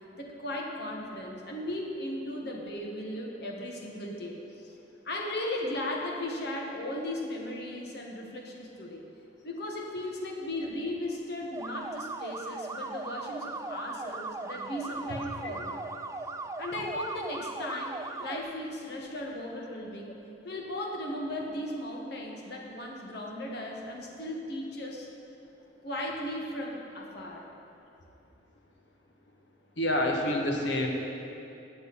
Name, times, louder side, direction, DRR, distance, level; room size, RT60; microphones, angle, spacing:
voice 1, 0.2-4.7 5.0-9.0 9.4-15.8 16.6-20.2 20.4-25.1 25.8-27.5, left 1 dB, 65° left, -1 dB, 1.6 m, -36 dB
sound 1, 11.5-18.4, right 3 dB, 15° right, 0.3 m, -38 dB
voice 2, 29.8-30.9, left 1 dB, 90° left, 1 dB, 1.4 m, -28 dB
16.0 x 7.8 x 4.2 m, 2.8 s
head